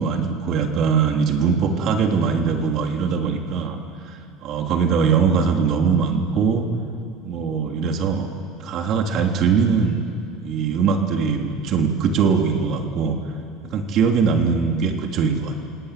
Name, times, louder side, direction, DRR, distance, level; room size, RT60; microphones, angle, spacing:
voice 1, 0.0-3.8 4.0-6.7 7.2-8.3 8.6-10.0 10.4-13.2 13.7-15.6, right 6 dB, 50° right, 3 dB, 3.4 m, -21 dB
29.0 x 19.0 x 9.3 m, 2.4 s
supercardioid pair, 115°, 0 cm